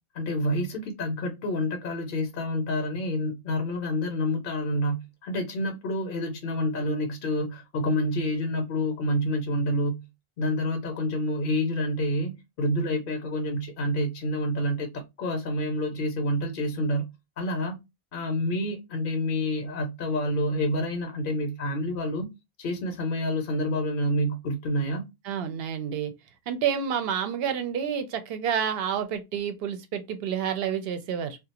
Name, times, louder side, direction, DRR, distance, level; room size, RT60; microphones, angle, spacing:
voice 1, 0.1-10.0 10.4-17.1 17.4-17.8 18.1-22.3 22.6-25.1, left 1 dB, 60° left, 0.7 m, -28 dB
voice 2, 25.2-26.1 26.5-31.4, right 8 dB, 70° right, 0.8 m, -29 dB
2.4 x 2.1 x 2.8 m
omnidirectional pair, 1.0 m